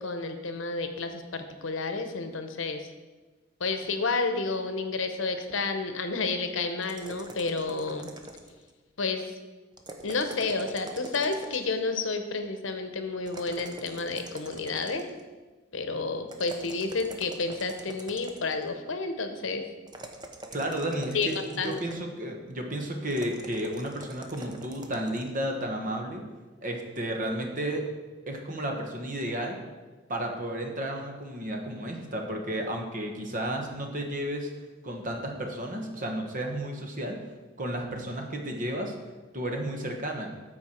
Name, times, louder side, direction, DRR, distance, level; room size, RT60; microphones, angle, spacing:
voice 1, 0.0-2.9 3.6-8.1 9.0-9.3 10.0-15.1 15.7-19.6 21.1-21.3 21.6-21.8, left 3 dB, 80° left, 7 dB, 0.9 m, -30 dB
sound 1, 6.8-8.7 9.7-11.8 13.3-15.2 16.3-18.7 19.9-22.1 23.1-25.3, right 2 dB, 20° right, 0.7 m, -44 dB
voice 2, 20.5-21.4 21.6-26.2 26.6-27.8 28.3-29.6 30.1-34.5 34.8-37.2 37.6-38.9 39.3-40.3, right 1 dB, 45° right, 2 dB, 1.2 m, -32 dB
13.0 x 4.6 x 4.4 m, 1.3 s
head